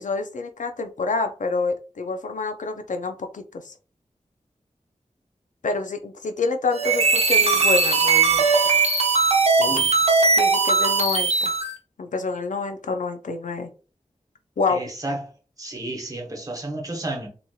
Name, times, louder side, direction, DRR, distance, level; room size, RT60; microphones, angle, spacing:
voice 1, 0.0-3.7 5.6-8.4 10.4-11.6 12.0-13.7 14.6-14.8, left 3 dB, 75° left, 0.5 m, -27 dB
sound 1, 6.7-11.7, right 4 dB, 55° right, 0.7 m, -19 dB
voice 2, 9.6-9.9 14.7-15.3 15.6-17.3, right 1 dB, 25° right, 1.0 m, -32 dB
2.9 x 2.8 x 2.3 m
wide cardioid pair, 50°, 13 cm